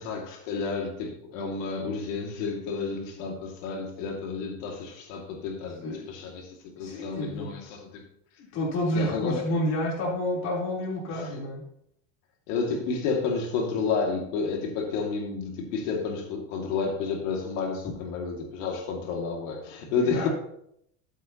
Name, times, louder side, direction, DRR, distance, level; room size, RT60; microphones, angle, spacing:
voice 1, 0.0-7.9 8.9-9.4 11.1-11.4 12.5-20.3, left 5 dB, 80° left, 1 dB, 2.4 m, -31 dB
voice 2, 6.8-7.5 8.5-11.6 17.8-17.9 20.0-20.3, left 1 dB, 45° left, -4 dB, 3.7 m, -29 dB
13.5 x 8.2 x 3.0 m, 0.72 s
cardioid pair, 165°, 39 cm